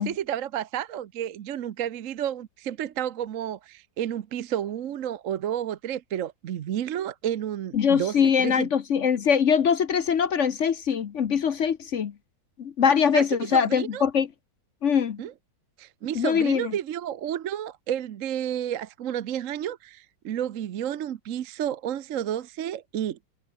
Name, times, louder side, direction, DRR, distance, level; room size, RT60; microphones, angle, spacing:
voice 1, 0.0-8.7 13.1-14.1 15.2-15.3 15.8-23.2, right 10 dB, 55° right, 1.0 m, -31 dB
voice 2, 7.7-12.1 12.6-14.3 14.8-15.2 16.1-16.8, left 7 dB, 50° left, 1.0 m, -23 dB
omnidirectional pair, 2.0 m